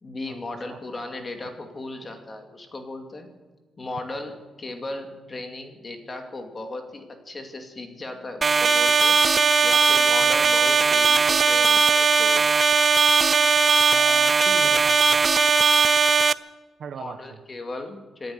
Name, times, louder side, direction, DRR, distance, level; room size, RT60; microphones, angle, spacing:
voice 1, 0.0-3.3 3.8-9.2 9.6-12.4 17.0-18.3, left 2 dB, 25° left, 6 dB, 2.4 m, -36 dB
sound 1, 8.4-16.3, right 5 dB, 30° right, 0.5 m, -18 dB
voice 2, 13.9-15.2 16.8-17.4, right 7 dB, 55° right, 10 dB, 1.4 m, -39 dB
26.5 x 10.5 x 9.5 m, 1.3 s
cardioid pair, 150°, 0 cm